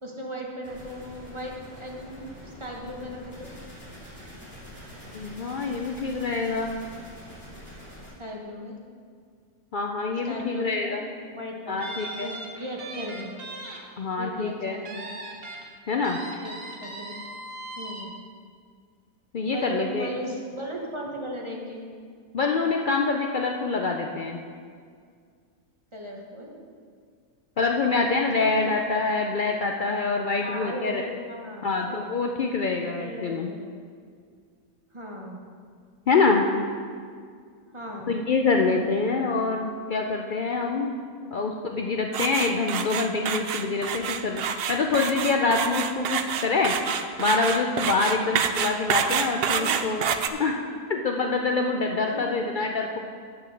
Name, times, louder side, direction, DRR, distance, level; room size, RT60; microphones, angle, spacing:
voice 1, 0.0-3.5 8.2-8.8 10.2-11.0 11.3-11.8 12.1-13.3 14.2-15.1 16.4-16.6 16.8-17.1 17.8-18.1 19.5-21.9 25.9-26.5 28.4-28.7 30.4-32.2 32.8-33.7 34.9-35.4 37.7-38.2 41.1-41.3 49.5-49.8 52.1-52.3, equal, 20° right, -1 dB, 1.1 m, -37 dB
sound 1, 0.6-8.1, equal, 5° left, 2.9 m, -45 dB
voice 2, 5.1-6.8 9.7-11.0 11.7-12.4 14.0-14.8 15.9-16.2 19.3-20.1 22.3-24.4 27.6-31.0 31.6-33.5 36.1-36.5 38.1-40.9 41.3-44.4 44.7-46.7 47.2-50.6 50.9-53.0, left 4 dB, 90° left, 2 dB, 0.4 m, -25 dB
sound 2, 11.8-13.8 14.1-14.3 14.9-15.6 16.0-18.0, right 2 dB, 45° right, 1.3 m, -39 dB
sound 3, 42.1-50.3, right 7 dB, 75° right, 0.5 m, -27 dB
8.6 x 6.0 x 6.4 m, 2.1 s
omnidirectional pair, 1.5 m